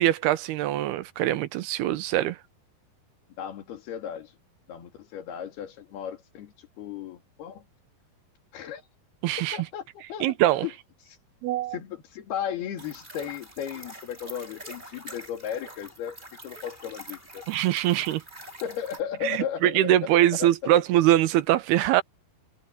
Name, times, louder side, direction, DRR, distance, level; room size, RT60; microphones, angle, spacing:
voice 1, 0.0-2.4 9.2-9.6 10.2-10.7 11.4-11.8 17.5-18.2 19.2-22.0, right 13 dB, 85° right, 3.0 m, -23 dB
voice 2, 3.4-4.4 4.7-7.7 8.5-8.9 9.5-10.7 11.0-11.2 11.6-16.2 16.4-17.4 17.9-18.0 18.6-20.0 20.4-20.7, left 9 dB, 80° left, 4.5 m, -35 dB
sound 1, 12.8-19.0, right 1 dB, 10° right, 4.6 m, -45 dB
omnidirectional pair, 4.5 m